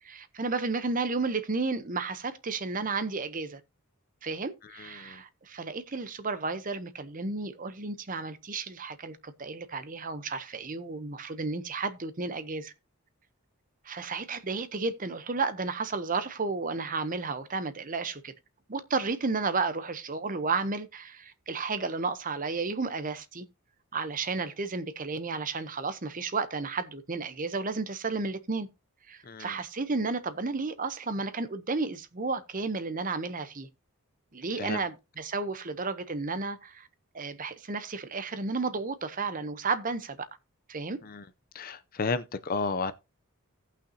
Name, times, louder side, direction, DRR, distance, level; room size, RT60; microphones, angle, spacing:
voice 1, 0.0-3.6 4.2-12.7 13.8-18.3 18.7-23.4 23.9-28.7 29.1-33.7 34.3-36.9 37.1-40.3 40.7-41.0, right 4 dB, 35° right, 0.8 m, -32 dB
voice 2, 4.8-5.2 29.3-29.5 34.6-34.8 41.1-41.2 41.5-42.9, left 4 dB, 40° left, 0.6 m, -32 dB
17.0 x 5.8 x 2.8 m
head